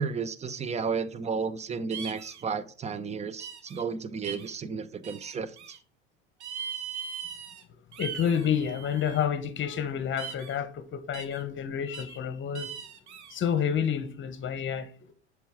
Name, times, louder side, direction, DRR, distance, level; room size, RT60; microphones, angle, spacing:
voice 1, 0.0-5.8, right 5 dB, 20° right, 0.7 m, -33 dB
sound 1, 1.9-2.4 3.4-3.8 4.2-4.5 5.0-5.8 6.4-7.6 7.9-9.2 10.2-10.6 11.1-11.4 11.9-12.2 12.5-13.4, right 7 dB, 85° right, 1.1 m, -40 dB
voice 2, 8.0-12.7 13.3-14.9, left 8 dB, 35° left, 1.1 m, -29 dB
6.9 x 4.9 x 3.7 m
hypercardioid pair, 85°, 33 cm